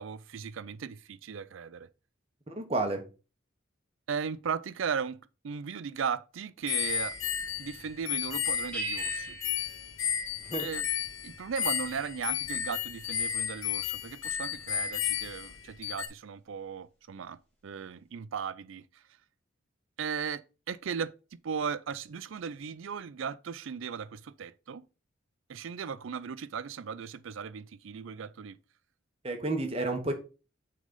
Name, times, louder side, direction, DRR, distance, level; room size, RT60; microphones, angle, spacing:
voice 1, 0.0-1.9 4.1-7.2 7.6-9.4 10.6-10.8 11.2-19.0 20.0-21.1 21.4-24.8 25.5-28.6, right 6 dB, 75° right, 0.4 m, -37 dB
voice 2, 2.5-3.0 10.4-10.7 29.2-30.1, right 2 dB, 30° right, 1.2 m, -31 dB
sound 1, 6.7-16.1, left 9 dB, 85° left, 0.9 m, -33 dB
sound 2, 8.7-10.9, right 2 dB, 5° left, 2.0 m, -40 dB
6.3 x 3.9 x 5.4 m
head